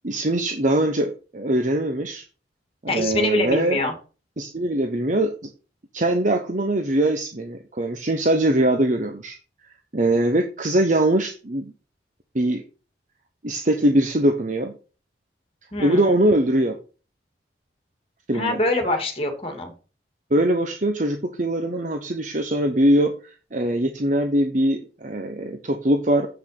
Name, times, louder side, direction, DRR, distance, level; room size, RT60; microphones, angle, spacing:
voice 1, 0.0-2.2 2.8-3.8 4.4-5.3 5.9-9.4 9.9-11.7 12.3-12.6 13.4-14.7 15.8-16.8 18.3-18.6 20.3-26.3, right 1 dB, 45° right, 5 dB, 1.1 m, -22 dB
voice 2, 2.9-3.9 15.7-16.1 18.3-19.7, left 2 dB, 30° left, 4 dB, 2.2 m, -24 dB
8.2 x 6.2 x 6.7 m, 0.36 s
head